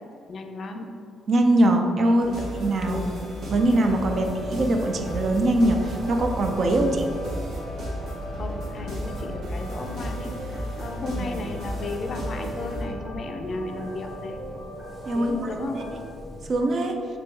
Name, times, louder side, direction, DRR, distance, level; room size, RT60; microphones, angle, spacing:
voice 1, 0.3-1.0 2.0-2.4 2.9-3.2 4.1-4.4 6.9-7.1 7.8-8.0 8.4-14.4 15.1-15.9, left 3 dB, 50° left, 4 dB, 0.4 m, -35 dB
voice 2, 1.3-2.3 2.6-3.0 3.5-7.0 15.1-15.7 16.5-16.9, right 1 dB, 50° right, 4 dB, 0.4 m, -22 dB
sound 1, 2.2-12.8, equal, 70° right, 1.2 m, -34 dB
sound 2, 3.4-15.9, right 1 dB, 35° right, 1.1 m, -40 dB
sound 3, 3.6-16.5, left 1 dB, 10° right, 0.8 m, -43 dB
3.4 x 2.9 x 3.2 m, 2.3 s
cardioid pair, 90°, 0 cm